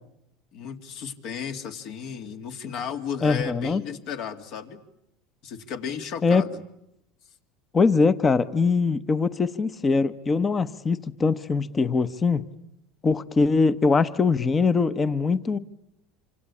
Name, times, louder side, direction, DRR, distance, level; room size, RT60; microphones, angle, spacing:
voice 1, 0.5-4.8 5.4-6.6, left 7 dB, 60° left, 2.4 m, -34 dB
voice 2, 3.2-3.8 6.2-6.5 7.7-12.4 13.0-15.6, left 4 dB, 20° left, 1.0 m, -22 dB
26.5 x 26.0 x 8.6 m
supercardioid pair, 125°, 0 cm